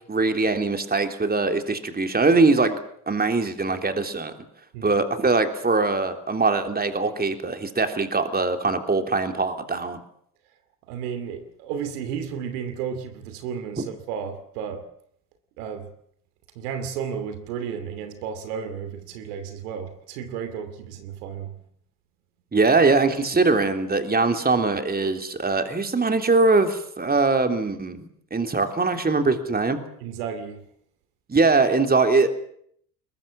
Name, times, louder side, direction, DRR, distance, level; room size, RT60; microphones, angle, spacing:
voice 1, 0.1-2.8 3.1-4.3 4.8-10.0 22.5-29.8 31.3-32.3, right 3 dB, 20° right, 3.4 m, -22 dB
voice 2, 10.9-14.8 15.6-15.9 16.5-21.6 30.0-30.6, right 7 dB, 75° right, 2.7 m, -33 dB
21.5 x 21.5 x 7.6 m
hypercardioid pair, 65°, 45 cm